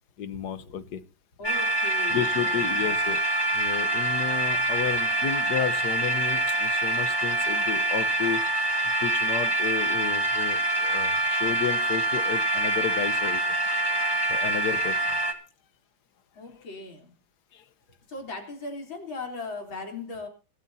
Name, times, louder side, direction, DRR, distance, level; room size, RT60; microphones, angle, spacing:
voice 1, 0.2-1.0 2.1-3.2 3.5-8.5 8.8-13.5 14.3-15.2 17.5-17.6, left 8 dB, 60° left, 13 dB, 1.5 m, -32 dB
voice 2, 1.4-2.7 16.4-17.1 18.1-20.3, left 3 dB, 90° left, 3 dB, 4.4 m, -38 dB
sound 1, 1.4-15.3, right 2 dB, 15° left, 1.8 m, -25 dB
23.5 x 13.0 x 2.8 m, 0.33 s
omnidirectional pair, 2.1 m